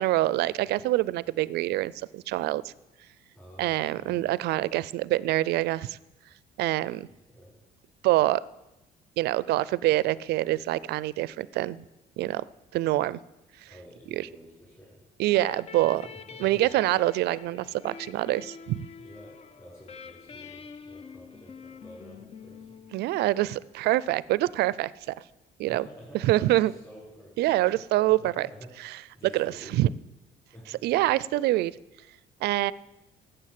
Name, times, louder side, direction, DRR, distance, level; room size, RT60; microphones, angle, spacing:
voice 1, 0.0-2.7 3.6-6.0 6.6-7.1 8.0-8.4 9.2-11.8 12.2-12.4 12.7-13.2 13.6-13.7 14.1-14.3 15.2-16.1 16.4-18.9 22.9-25.2 25.6-25.9 26.2-26.7 27.4-28.5 28.8-29.0 29.3-29.9 30.7-31.7 32.4-32.7, right 16 dB, 75° right, 20 dB, 0.4 m, -25 dB
voice 2, 3.3-4.3 7.3-7.5 13.7-15.0 16.0-16.7 19.0-22.8 25.7-27.3 28.2-29.9 30.5-30.9, equal, 15° left, -7 dB, 4.9 m, -49 dB
sound 1, 15.3-23.8, left 6 dB, 40° left, 0.6 m, -46 dB
12.0 x 7.9 x 7.6 m, 1.0 s
cardioid pair, 110°, 17 cm